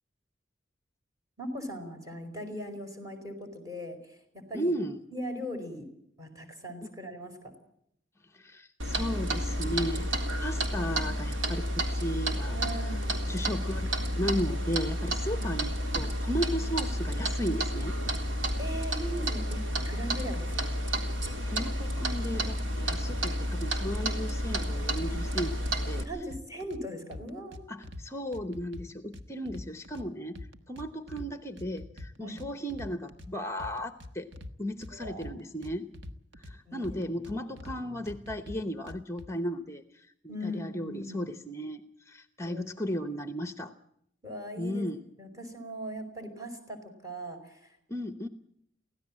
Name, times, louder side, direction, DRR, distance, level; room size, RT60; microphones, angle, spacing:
voice 1, 1.4-4.7 5.1-5.9 6.2-7.5 12.5-13.3 15.3-15.6 18.6-20.8 26.0-27.7 32.2-32.4 34.9-35.5 36.6-36.9 40.3-41.2 42.4-42.6 44.2-44.8 45.2-47.7, equal, 20° right, 5 dB, 4.8 m, -39 dB
voice 2, 4.5-5.0 8.2-13.0 13.3-18.0 21.4-26.1 27.7-34.3 34.6-35.9 36.4-43.7 44.6-45.0 47.9-48.3, equal, 15° left, 10 dB, 0.9 m, -35 dB
Clock, 8.8-26.0, equal, 90° right, 3.5 m, -31 dB
sound 1, 26.3-26.8 27.1-28.0 28.3-30.1 30.4-31.3 31.6-33.3 33.6-34.5 34.8-36.5 36.8-37.8 38.1-39.3, left 1 dB, 70° right, 1.4 m, -44 dB
24.0 x 17.0 x 7.4 m, 0.72 s
head